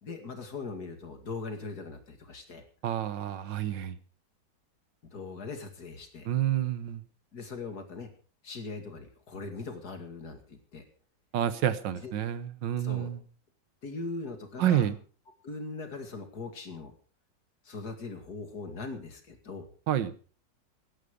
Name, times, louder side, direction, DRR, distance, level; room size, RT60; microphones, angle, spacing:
voice 1, 0.0-2.6 5.0-6.3 7.3-8.1 8.4-10.8 12.0-12.1 12.8-13.1 13.8-14.9 15.4-16.9 17.6-19.7, left 3 dB, 60° left, 2.8 m, -40 dB
voice 2, 2.8-4.0 6.3-7.0 11.3-13.2 14.6-14.9 19.9-20.1, right 11 dB, 85° right, 1.7 m, -29 dB
17.0 x 11.5 x 5.1 m
omnidirectional pair, 1.9 m